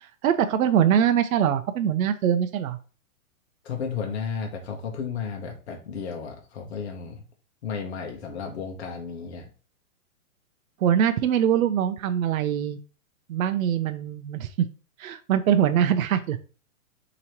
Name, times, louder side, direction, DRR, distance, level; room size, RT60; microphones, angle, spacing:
voice 1, 0.0-2.8 10.8-12.8 13.3-14.7 15.0-16.4, right 9 dB, 70° right, 8 dB, 0.6 m, -23 dB
voice 2, 3.6-7.2 7.6-9.5, left 6 dB, 50° left, 2 dB, 0.9 m, -33 dB
4.9 x 2.9 x 2.9 m, 0.37 s
hypercardioid pair, 170°, 43 cm